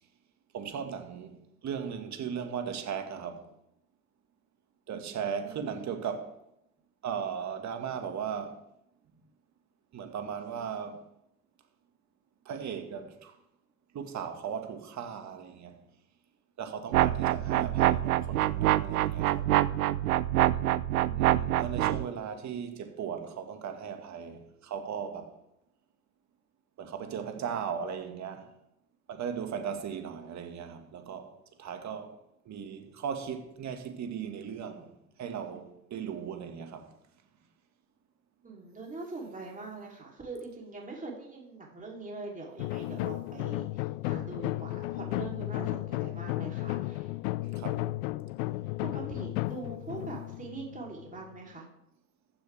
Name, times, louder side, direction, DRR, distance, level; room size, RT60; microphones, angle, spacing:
voice 1, 0.5-3.5 4.9-6.3 7.0-8.6 9.9-11.1 12.5-13.4 13.9-15.8 16.6-19.5 21.1-25.4 26.8-28.5 29.1-31.3 31.6-32.2 32.5-36.9 47.6-47.8, right 7 dB, 40° right, 1.9 m, -37 dB
voice 2, 4.9-5.7 20.5-21.5 38.4-47.2 48.8-51.7, right 3 dB, 20° right, 3.5 m, -43 dB
sound 1, 16.9-22.0, right 14 dB, 80° right, 0.5 m, -26 dB
sound 2, 42.6-51.4, left 19 dB, 60° left, 0.5 m, -34 dB
14.5 x 10.5 x 3.5 m
figure-of-eight pair, 65°, 43 cm